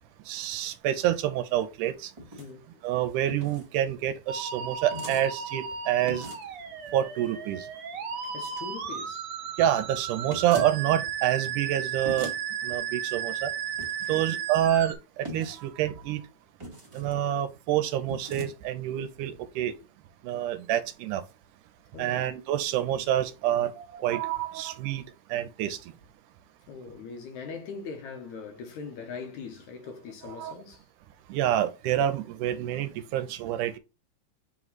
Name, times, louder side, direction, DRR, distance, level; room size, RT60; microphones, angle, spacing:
voice 1, 0.3-2.1 2.8-6.3 6.9-7.7 9.6-12.3 12.6-13.5 14.1-16.2 16.9-19.7 20.2-21.2 22.0-25.0 25.3-25.9 30.4-30.5 31.3-33.8, right 11 dB, 85° right, 2.1 m, -27 dB
sound 1, 2.2-2.5 3.3-3.7 4.9-5.3 6.1-6.5 10.3-10.7 12.0-12.4 13.8-14.2 15.2-15.6 16.6-17.1 18.1-18.5, equal, 20° right, 0.9 m, -39 dB
voice 2, 2.4-2.9 8.2-9.3 14.0-14.3 21.9-22.2 26.7-30.9, left 5 dB, 70° left, 2.3 m, -41 dB
Musical instrument, 4.3-14.9, right 7 dB, 60° right, 1.7 m, -35 dB
7.4 x 3.1 x 4.1 m
omnidirectional pair, 3.7 m